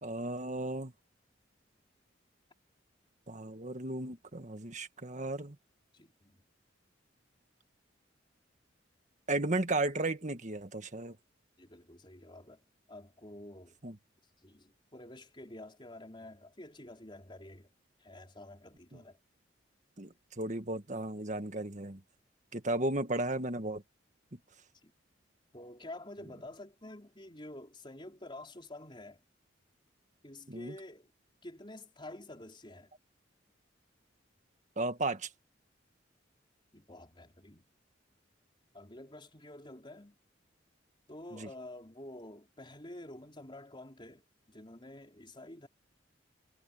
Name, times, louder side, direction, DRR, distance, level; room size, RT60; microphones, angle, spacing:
voice 1, 0.0-0.9 3.3-5.6 9.3-11.2 13.8-14.0 18.9-19.0 20.0-22.0 22.5-23.8 24.3-24.4 30.5-30.7 34.8-35.3 41.3-41.5, right 2 dB, 40° right, 1.7 m, -35 dB
voice 2, 5.9-6.4 11.6-12.6 12.9-13.8 14.4-17.7 18.0-19.2 24.8-24.9 25.5-29.2 30.2-31.1 31.4-32.9 36.7-37.7 38.7-40.2 41.1-44.2 44.5-45.7, left 1 dB, 25° left, 4.5 m, -49 dB
head